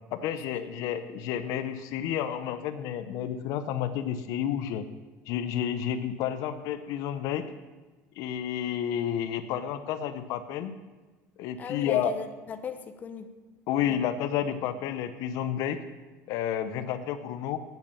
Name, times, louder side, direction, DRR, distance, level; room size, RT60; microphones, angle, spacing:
voice 1, 0.1-4.8 5.3-7.4 8.2-10.7 11.4-12.1 13.7-15.8 16.3-17.6, left 9 dB, 65° left, 11 dB, 0.7 m, -30 dB
voice 2, 11.6-13.3 13.9-14.0, left 6 dB, 25° left, 7 dB, 0.8 m, -38 dB
8.9 x 8.0 x 6.8 m, 1.2 s
cardioid pair, 150°, 6 cm